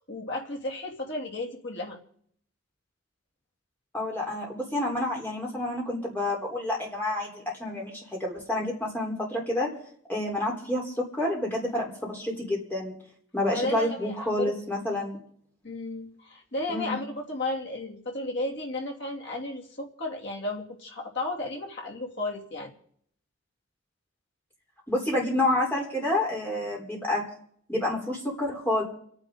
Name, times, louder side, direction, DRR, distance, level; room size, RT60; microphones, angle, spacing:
voice 1, 0.1-2.0 13.5-14.5 15.6-22.7, left 2 dB, 55° left, 0 dB, 2.9 m, -33 dB
voice 2, 3.9-9.7 10.1-13.0 13.3-15.2 16.7-17.0 24.9-27.2 27.7-28.8, left 1 dB, 10° left, -2 dB, 4.0 m, -29 dB
29.5 x 9.9 x 3.9 m, 0.64 s
head